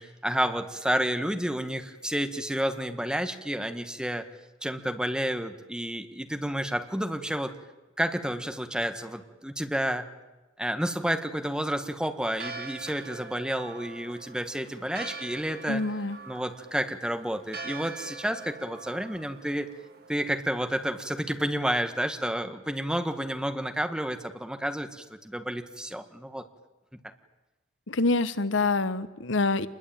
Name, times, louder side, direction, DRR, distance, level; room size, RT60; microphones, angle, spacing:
voice 1, 0.0-4.3 4.6-7.5 8.0-10.1 10.6-15.8 16.3-19.7 20.1-26.4, equal, 5° right, 7 dB, 1.6 m, -30 dB
Church bell, 12.3-21.2, right 4 dB, 55° right, 2.2 m, -44 dB
voice 2, 15.7-16.2 27.9-29.7, left 3 dB, 70° left, 14 dB, 1.1 m, -26 dB
27.5 x 21.5 x 9.0 m, 1.1 s
head